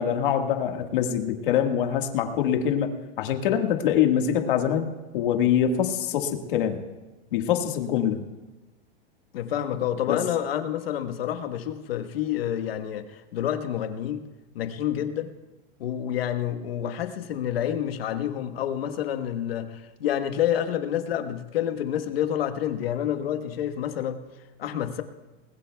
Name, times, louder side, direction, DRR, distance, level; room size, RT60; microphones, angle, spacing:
voice 1, 0.0-4.9 5.1-6.8 7.3-8.2 10.1-10.2, left 9 dB, 60° left, 4 dB, 1.7 m, -24 dB
voice 2, 9.3-14.3 14.5-15.3 15.8-24.2 24.6-25.0, left 10 dB, 85° left, 8 dB, 1.4 m, -28 dB
21.0 x 20.0 x 2.3 m, 1.1 s
supercardioid pair, 165°, 29 cm